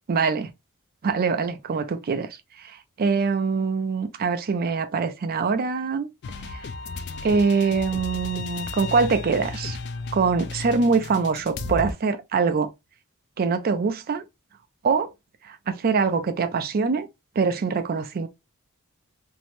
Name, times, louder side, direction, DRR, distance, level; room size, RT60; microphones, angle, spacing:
voice 1, 0.1-0.5 1.0-2.3 2.6-2.7 3.0-6.1 7.2-9.8 10.1-12.7 13.4-14.2 14.8-15.1 15.4-17.1 17.4-18.3, right 5 dB, 40° right, 0.4 m, -23 dB
sound 1, 6.2-11.9, left 3 dB, 50° left, 0.3 m, -34 dB
2.7 x 2.0 x 3.0 m
head